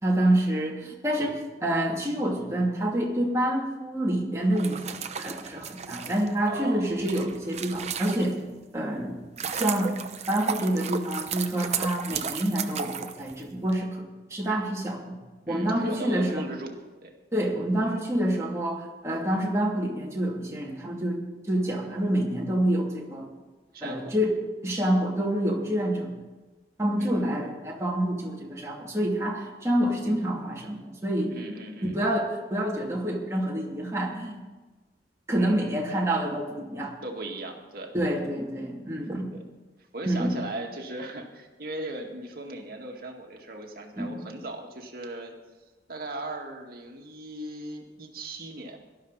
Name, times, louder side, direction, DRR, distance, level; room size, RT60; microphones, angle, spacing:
voice 1, 0.0-8.4 8.7-9.2 9.5-9.9 10.3-15.2 15.5-16.4 17.3-21.2 21.5-23.3 23.8-26.1 26.8-31.3 31.8-34.4 35.3-37.0 37.9-39.3 40.1-40.4 44.0-44.3, right 1 dB, 15° right, -3 dB, 2.6 m, -27 dB
sound 1, 4.5-8.6 9.0-13.7, right 6 dB, 40° right, 0.8 m, -34 dB
voice 2, 6.5-6.9 15.5-17.1 23.7-24.1 24.8-24.9 25.8-25.9 27.0-27.2 31.3-31.9 35.4-36.1 37.0-37.9 38.2-38.3 39.3-39.4 39.9-45.3 45.9-48.8, right 1 dB, 55° right, 2 dB, 2.0 m, -38 dB
18.0 x 12.5 x 4.1 m, 1.2 s
head